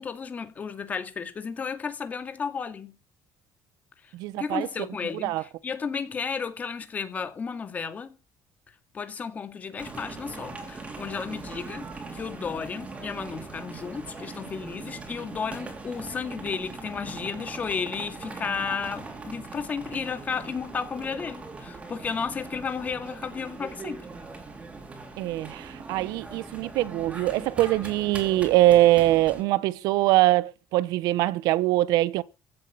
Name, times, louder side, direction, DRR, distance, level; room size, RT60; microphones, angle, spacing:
voice 1, 0.0-3.0 4.4-8.2 8.9-11.8 12.1-24.1, left 6 dB, 25° left, 2.2 m, -33 dB
voice 2, 4.1-4.7 5.2-5.4 25.2-32.2, right 16 dB, 90° right, 0.8 m, -23 dB
sound 1, 9.8-29.4, right 3 dB, 20° right, 3.6 m, -40 dB
15.5 x 8.2 x 9.5 m
cardioid pair, 175°, 6 cm